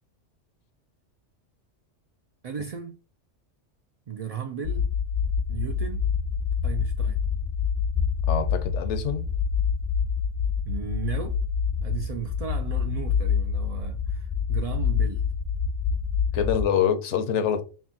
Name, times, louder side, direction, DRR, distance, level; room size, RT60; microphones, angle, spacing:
voice 1, 2.4-3.0 4.1-4.9 5.5-6.1 6.6-7.2 10.7-11.4 11.8-15.2, right 8 dB, 75° right, 0.3 m, -35 dB
sound 1, 4.6-16.6, left 6 dB, 50° left, 0.6 m, -26 dB
voice 2, 8.3-9.2 16.3-17.6, left 8 dB, 75° left, 0.9 m, -25 dB
5.8 x 2.2 x 2.8 m
omnidirectional pair, 1.2 m